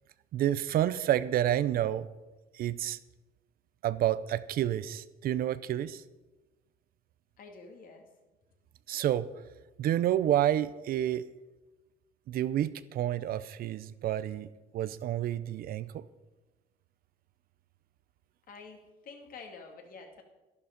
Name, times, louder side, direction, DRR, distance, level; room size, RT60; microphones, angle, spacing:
voice 1, 0.3-2.1 2.5-3.0 3.8-6.0 8.9-9.3 9.8-11.3 12.3-14.5 14.7-16.0, right 12 dB, 65° right, 16 dB, 0.6 m, -29 dB
voice 2, 7.4-8.1 18.5-20.2, left 4 dB, 60° left, 3 dB, 2.4 m, -48 dB
11.5 x 11.0 x 5.1 m, 1.1 s
cardioid pair, 100°, 17 cm